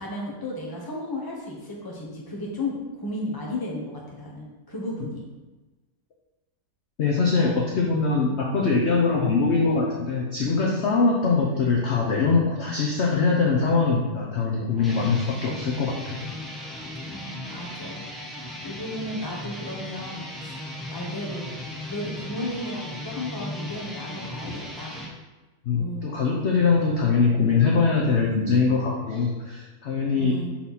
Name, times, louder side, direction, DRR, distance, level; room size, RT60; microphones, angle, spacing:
voice 1, 0.0-5.2 7.4-7.6 17.1-18.4 18.6-21.5 21.8-24.5 24.8-25.0 25.7-26.1 30.1-30.6, left 1 dB, 15° left, -3 dB, 1.0 m, -34 dB
voice 2, 7.0-16.3 25.7-30.4, left 4 dB, 55° left, -1 dB, 0.8 m, -22 dB
sound 1, 14.7-25.1, left 1 dB, ahead, 0.4 m, -37 dB
5.6 x 4.4 x 4.2 m, 1.2 s
omnidirectional pair, 1.7 m